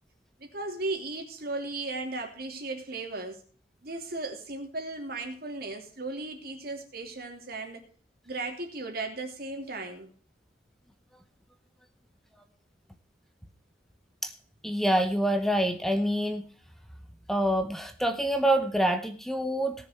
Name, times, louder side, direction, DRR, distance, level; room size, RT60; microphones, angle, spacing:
voice 1, 0.4-3.4 3.8-7.8 8.2-10.1, right 2 dB, 55° right, 3 dB, 3.1 m, -36 dB
voice 2, 14.6-16.4 17.3-19.7, right 1 dB, ahead, 7 dB, 0.9 m, -26 dB
19.0 x 6.9 x 4.4 m, 0.44 s
head